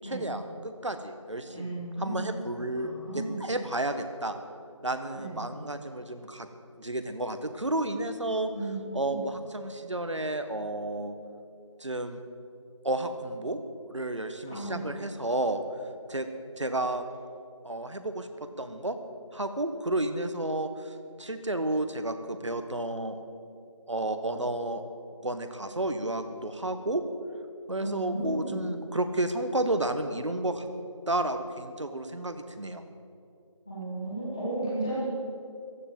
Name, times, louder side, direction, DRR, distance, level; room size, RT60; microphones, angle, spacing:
voice 1, 0.0-4.4 4.8-6.5 6.8-8.5 8.9-11.1 11.8-12.2 12.8-13.6 13.9-15.6 16.1-16.3 16.6-17.1 17.6-19.0 19.3-23.2 23.9-24.8 25.2-27.0 27.7-30.7 31.1-32.8, right 1 dB, 65° right, 9 dB, 1.5 m, -31 dB
voice 2, 1.5-2.2 2.7-3.3 5.1-5.4 8.5-8.7 9.0-9.1 14.4-14.9 27.8-28.7 33.6-35.0, right 2 dB, 10° left, -11 dB, 1.5 m, -34 dB
15.0 x 11.0 x 7.6 m, 2.5 s
figure-of-eight pair, 180°, 17 cm